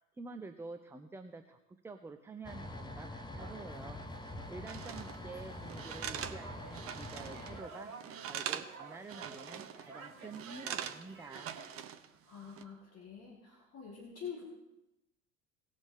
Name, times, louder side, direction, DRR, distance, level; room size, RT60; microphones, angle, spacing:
voice 1, 0.1-4.0 4.5-11.5, right 3 dB, 5° right, 7 dB, 0.5 m, -48 dB
sound 1, 2.4-7.6, left 1 dB, 10° left, 1.1 m, -45 dB
sound 2, 3.4-11.8, right 4 dB, 75° right, 1.5 m, -52 dB
sound 3, 4.7-5.2 5.7-7.5 7.8-8.7 9.0-9.9 10.3-12.1 12.4-12.6, right 9 dB, 35° right, 0.8 m, -42 dB
voice 2, 12.0-14.4, left 7 dB, 35° left, -1 dB, 2.2 m, -47 dB
19.0 x 6.5 x 3.6 m, 0.94 s
figure-of-eight pair, 70°, 41 cm